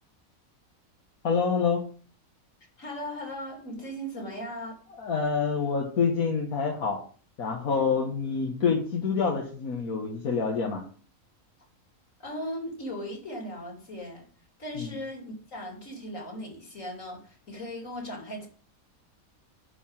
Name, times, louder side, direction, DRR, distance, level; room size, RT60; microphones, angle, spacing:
voice 1, 1.2-1.9 5.0-7.0 7.4-10.8 14.8-14.9, left 5 dB, 80° left, 1.9 m, -27 dB
voice 2, 2.8-4.7 12.2-14.3 14.6-18.5, equal, 65° left, 3.3 m, -37 dB
11.0 x 4.8 x 7.3 m
omnidirectional pair, 1.5 m